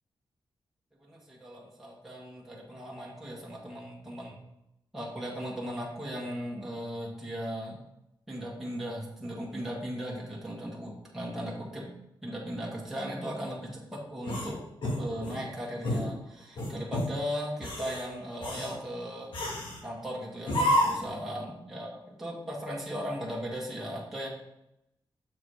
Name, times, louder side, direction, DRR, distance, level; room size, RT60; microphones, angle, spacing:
voice 1, 1.1-4.4 4.9-7.8 8.3-11.9 12.2-14.6 15.0-19.3 19.8-24.3, equal, 5° right, -5 dB, 1.5 m, -37 dB
sound 1, 14.2-15.4 15.8-16.1 16.6-17.1 17.5-18.0 18.4-18.8 19.3-19.8 20.5-21.1, left 1 dB, 75° left, 2.3 m, -29 dB
6.8 x 4.8 x 4.9 m, 0.85 s
wide cardioid pair, 165°, 9 cm